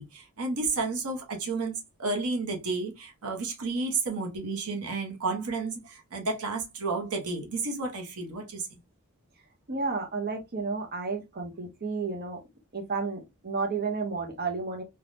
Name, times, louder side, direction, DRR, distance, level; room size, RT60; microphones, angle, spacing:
voice 1, 0.0-1.7 2.0-8.7, right 3 dB, 85° right, 0.9 m, -31 dB
voice 2, 9.7-12.4 12.7-14.8, right 4 dB, 45° right, 0.7 m, -32 dB
3.4 x 2.2 x 2.5 m
head